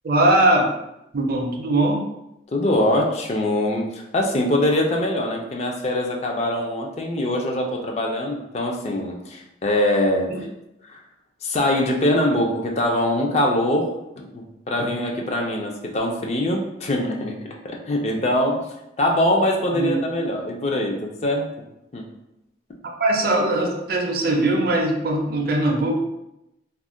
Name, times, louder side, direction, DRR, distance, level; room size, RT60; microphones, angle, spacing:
voice 1, 0.0-0.7 1.1-2.0 10.3-10.4 19.7-19.9 23.0-26.0, right 1 dB, 55° right, 1 dB, 0.5 m, -20 dB
voice 2, 2.5-10.5 10.8-11.0 11.4-17.4 17.6-18.6 19.0-21.5 21.9-22.1, left 1 dB, 35° left, 1 dB, 0.4 m, -23 dB
2.4 x 2.1 x 3.6 m, 0.87 s
head